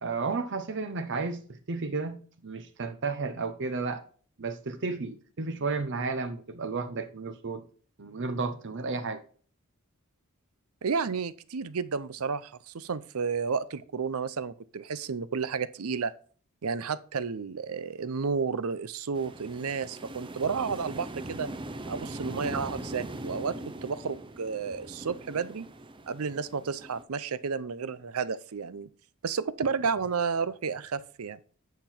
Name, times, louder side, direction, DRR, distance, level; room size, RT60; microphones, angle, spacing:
voice 1, 0.0-2.2 2.4-4.0 4.4-7.6 8.0-9.2, right 4 dB, 55° right, 0.9 m, -32 dB
voice 2, 10.8-16.1 16.6-21.5 21.9-23.6 23.8-25.7 26.1-28.9 29.2-31.4, right 5 dB, 80° right, 0.6 m, -32 dB
sound 1, 19.1-27.0, right 1 dB, 25° right, 0.6 m, -41 dB
9.2 x 5.8 x 4.5 m
head